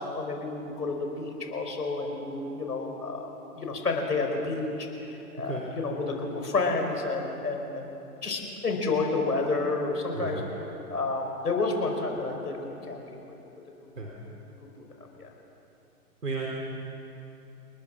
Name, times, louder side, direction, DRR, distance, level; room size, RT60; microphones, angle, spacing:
voice 1, 0.0-3.3 3.6-4.7 5.1-7.9 8.2-10.4 10.9-13.3 14.2-14.9 15.2-15.3, left 3 dB, 85° left, 3 dB, 5.0 m, -30 dB
voice 2, 10.1-10.4 14.0-14.1 16.2-16.5, right 3 dB, 85° right, -1 dB, 3.7 m, -33 dB
29.5 x 20.5 x 6.3 m, 2.9 s
hypercardioid pair, 125°, 46 cm